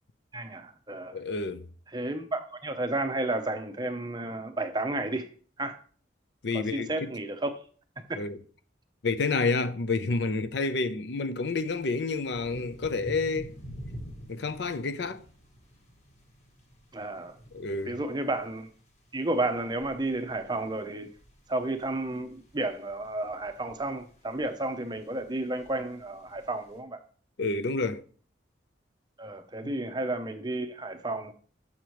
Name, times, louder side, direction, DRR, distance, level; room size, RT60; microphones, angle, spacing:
voice 1, 0.3-1.2 1.9-5.3 5.6-5.8 6.5-7.5 8.1-8.2 16.9-17.4 17.9-18.7 19.1-21.1 21.5-27.0 29.2-31.3, right 2 dB, 20° right, 0.6 m, -32 dB
voice 2, 1.1-1.7 6.4-7.1 8.2-8.4 9.0-13.5 14.3-15.2 17.5-18.0 27.4-28.0 29.6-29.7, left 3 dB, 65° left, 0.5 m, -29 dB
sound 1, 11.4-26.8, equal, 40° left, 1.6 m, -49 dB
7.2 x 6.7 x 3.0 m
head